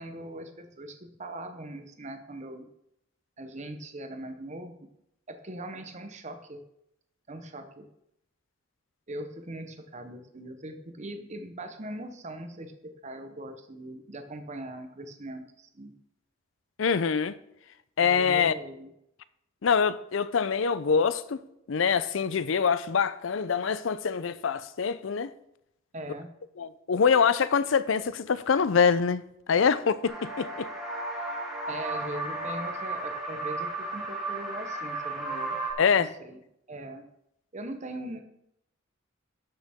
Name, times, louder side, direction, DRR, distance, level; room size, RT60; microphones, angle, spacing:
voice 1, 0.0-2.7 3.4-4.9 5.3-6.6 7.3-7.9 9.1-15.9 18.0-18.9 25.9-26.3 31.7-35.6 36.0-36.4 36.7-37.0 37.5-38.2, right 1 dB, 35° right, 1.0 m, -40 dB
voice 2, 16.8-17.4 18.0-18.5 19.6-25.3 26.6-29.2 29.5-30.7 35.8-36.1, left 6 dB, 75° left, 0.5 m, -25 dB
sound 1, 30.1-35.7, right 2 dB, ahead, 2.2 m, -34 dB
12.5 x 6.7 x 3.6 m
head